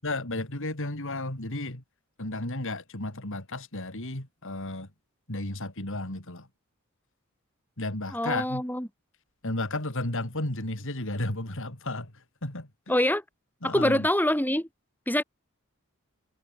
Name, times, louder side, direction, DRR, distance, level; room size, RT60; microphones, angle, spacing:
voice 1, 0.0-1.8 2.2-4.9 5.3-6.5 7.8-8.6 9.4-12.7 13.6-14.1, left 2 dB, 60° left, 4.4 m, -33 dB
voice 2, 8.1-8.9 12.9-13.2 13.6-14.7 15.1-15.2, left 1 dB, 10° left, 6.1 m, -25 dB
head